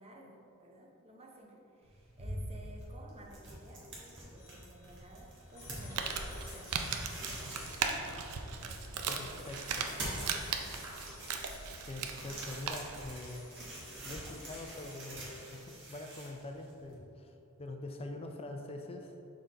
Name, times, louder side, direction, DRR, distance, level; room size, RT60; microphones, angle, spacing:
voice 1, 0.0-6.9 7.2-7.8 8.6-9.5, right 1 dB, 30° right, 0 dB, 0.7 m, -55 dB
sound 1, 1.8-17.0, right 1 dB, 55° right, 1.4 m, -46 dB
sound 2, 4.4-15.0, left 5 dB, 90° left, 0.7 m, -57 dB
Crumpling crinkling, 5.7-13.1, right 5 dB, 80° right, 0.5 m, -38 dB
voice 2, 9.1-9.9 11.9-13.5 14.0-19.2, left 2 dB, 25° left, 4 dB, 0.4 m, -44 dB
6.4 x 3.9 x 4.0 m, 2.8 s
head